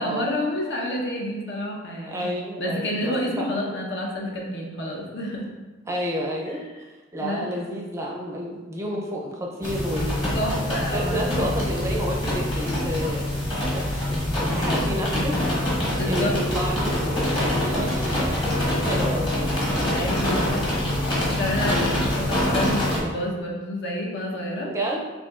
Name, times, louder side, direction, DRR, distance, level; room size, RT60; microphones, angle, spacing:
voice 1, 0.0-2.3 2.6-5.5 7.2-7.4 10.3-11.5 15.9-16.4 19.9-20.6 21.2-24.7, left 1 dB, 65° left, -2 dB, 0.8 m, -29 dB
voice 2, 2.1-3.7 5.9-6.6 7.1-10.4 10.7-13.4 13.7-15.4 15.7-19.6 21.7-22.1 24.6-25.1, equal, 15° right, -2 dB, 0.5 m, -30 dB
sound 1, 9.6-23.0, left 1 dB, 25° left, 1.3 m, -25 dB
6.9 x 2.7 x 2.4 m, 1.2 s
head